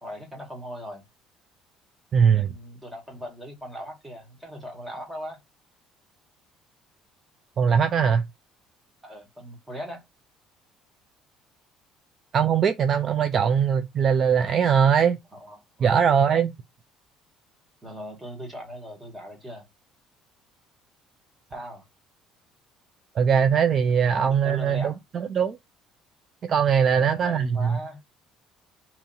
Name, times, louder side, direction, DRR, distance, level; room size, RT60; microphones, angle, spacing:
voice 1, 0.0-1.0 2.3-5.4 9.0-10.0 15.3-16.0 17.8-19.7 21.5-21.8 24.0-25.0 26.9-28.0, equal, 15° right, 1.4 m, -39 dB
voice 2, 2.1-2.5 7.6-8.2 12.3-15.2 15.8-16.5 23.2-25.6 26.4-27.8, right 7 dB, 45° right, 0.3 m, -21 dB
2.8 x 2.7 x 4.0 m
cardioid pair, 115°, 0 cm